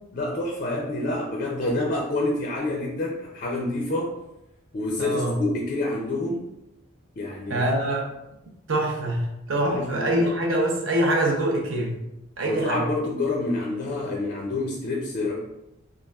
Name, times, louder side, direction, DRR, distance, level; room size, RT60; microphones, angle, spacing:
voice 1, 0.1-4.2 4.7-6.5 7.2-7.7 9.6-10.3 12.4-15.4, left 2 dB, 40° left, -2 dB, 0.4 m, -28 dB
voice 2, 5.0-5.4 7.5-8.1 8.7-12.0 12.4-12.9, right 1 dB, 65° right, 0 dB, 0.6 m, -24 dB
3.2 x 2.3 x 2.3 m, 0.90 s
head